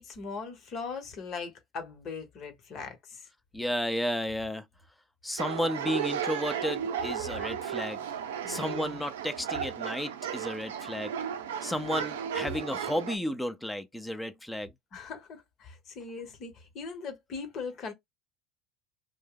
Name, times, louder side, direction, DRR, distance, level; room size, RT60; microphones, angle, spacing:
voice 1, 0.0-3.3 8.4-9.0 11.7-12.0 14.9-17.9, left 5 dB, 45° left, 1.2 m, -40 dB
voice 2, 3.5-4.6 5.2-8.1 8.5-11.1 11.6-14.7, left 1 dB, 5° left, 0.7 m, -33 dB
sound 1, 5.4-13.2, right 8 dB, 80° right, 0.5 m, -34 dB
2.6 x 2.3 x 3.8 m
hypercardioid pair, 80°, 0 cm